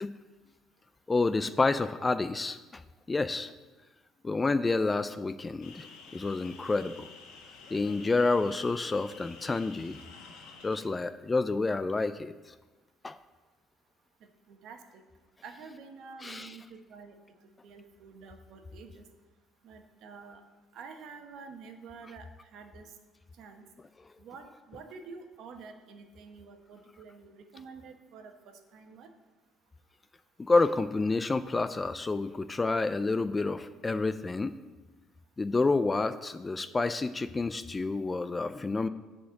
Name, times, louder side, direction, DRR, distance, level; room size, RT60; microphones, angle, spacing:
voice 1, 1.1-2.6 3.1-3.5 4.2-5.9 6.1-7.1 7.7-10.0 10.6-12.3 13.0-13.2 16.2-16.5 30.5-34.5 35.4-38.9, left 3 dB, 20° left, 13 dB, 0.3 m, -29 dB
sound 1, 5.6-10.8, left 4 dB, 85° left, 1.3 m, -50 dB
voice 2, 14.5-15.0 15.4-17.1 17.6-19.0 19.6-20.4 20.7-22.9 23.4-23.6 24.2-29.1, right 5 dB, 65° right, 5 dB, 1.1 m, -48 dB
10.0 x 4.3 x 7.0 m, 1.2 s
cardioid pair, 135°, 0 cm